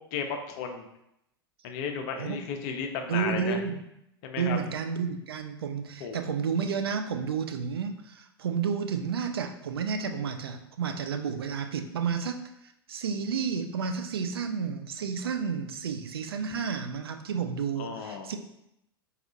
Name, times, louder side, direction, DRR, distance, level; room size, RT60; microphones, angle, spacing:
voice 1, 0.1-0.8 1.6-3.6 4.2-4.6 6.0-6.2 17.8-18.4, left 6 dB, 45° left, 4 dB, 0.5 m, -34 dB
voice 2, 3.1-3.8 4.4-12.5 12.9-18.4, right 6 dB, 70° right, 7 dB, 0.4 m, -31 dB
4.1 x 2.6 x 2.6 m, 0.81 s
figure-of-eight pair, 90°, 13 cm